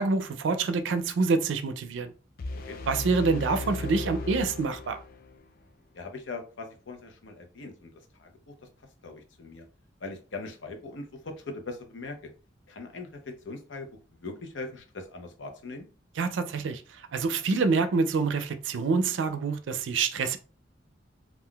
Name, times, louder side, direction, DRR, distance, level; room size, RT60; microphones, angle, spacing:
voice 1, 0.0-2.1 2.9-5.0 16.2-20.4, right 4 dB, 85° right, 0.4 m, -26 dB
sound 1, 2.4-5.4, left 3 dB, 50° left, 0.4 m, -36 dB
voice 2, 5.9-7.9 8.2-8.7 9.0-9.7 10.0-12.3 12.7-15.9, left 3 dB, 85° left, 0.7 m, -41 dB
3.7 x 2.3 x 2.2 m
head